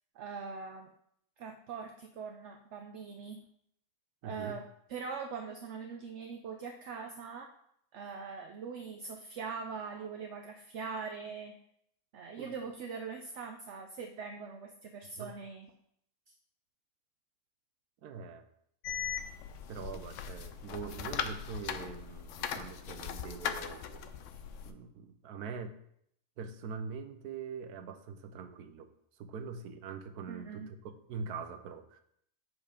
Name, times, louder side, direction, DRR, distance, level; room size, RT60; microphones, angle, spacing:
voice 1, 0.1-0.9 1.4-3.4 4.2-4.6 4.9-7.5 7.9-11.5 12.1-15.7 30.3-30.7, right 5 dB, 60° right, 4 dB, 0.8 m, -42 dB
voice 2, 4.2-4.6 12.4-12.5 15.2-15.3 18.0-18.5 19.7-24.0 24.6-25.7 26.4-28.9 29.2-32.0, right 5 dB, 80° right, 8 dB, 1.3 m, -43 dB
sound 1, 18.8-24.7, left 8 dB, 65° left, 0.8 m, -39 dB
7.7 x 4.7 x 5.1 m, 0.71 s
omnidirectional pair, 1.6 m